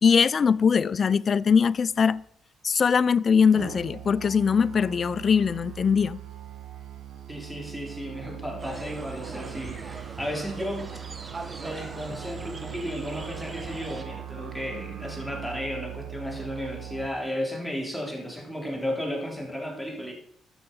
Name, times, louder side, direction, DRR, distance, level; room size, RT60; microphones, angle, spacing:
voice 1, 0.0-2.2 2.6-6.2, left 6 dB, 45° left, 0.4 m, -21 dB
Musical instrument, 3.5-17.1, right 11 dB, 85° right, 1.5 m, -41 dB
voice 2, 7.3-10.9 11.6-20.1, equal, ahead, 3.7 m, -34 dB
sound 1, 8.6-14.0, right 3 dB, 30° right, 1.7 m, -40 dB
13.0 x 6.9 x 5.5 m
cardioid pair, 90°, 0 cm